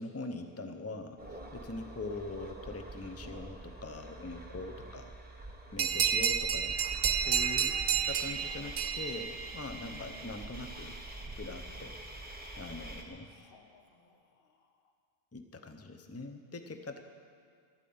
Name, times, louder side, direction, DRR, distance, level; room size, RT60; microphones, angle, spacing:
voice 1, 0.0-5.1 5.7-6.7 7.1-11.0 11.4-12.0 12.6-13.3 15.3-17.0, left 2 dB, 15° left, 7 dB, 0.7 m, -42 dB
sound 1, 1.2-13.0, right 2 dB, 10° right, 1.3 m, -45 dB
sound 2, 5.8-10.0, right 7 dB, 60° right, 0.7 m, -31 dB
voice 2, 13.3-14.7, left 5 dB, 55° left, 5 dB, 1.2 m, -59 dB
13.5 x 9.0 x 8.6 m, 2.1 s
omnidirectional pair, 1.1 m